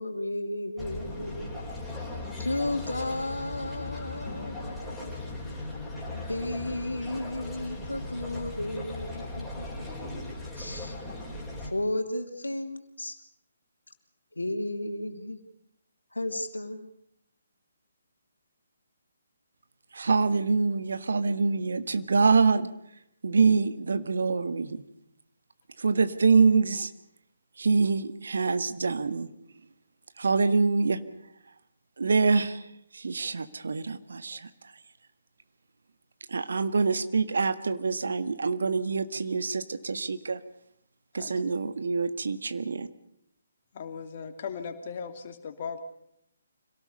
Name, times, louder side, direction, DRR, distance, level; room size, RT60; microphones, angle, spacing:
voice 1, 0.0-1.5 2.4-5.1 6.1-9.7 10.6-11.0 11.6-13.2 14.3-15.4 16.1-16.9, left 1 dB, 75° left, 6 dB, 3.0 m, -33 dB
sound 1, 0.8-11.7, left 2 dB, ahead, 4.9 m, -38 dB
voice 2, 19.9-22.7 23.2-24.8 25.8-26.9 27.6-29.3 30.2-31.0 32.0-32.7 32.9-34.5 36.3-40.4 41.1-42.9, right 4 dB, 60° right, 12 dB, 1.5 m, -25 dB
voice 3, 43.7-45.8, left 6 dB, 35° left, 6 dB, 2.7 m, -37 dB
26.0 x 18.0 x 6.8 m, 0.75 s
figure-of-eight pair, 140°, 0 cm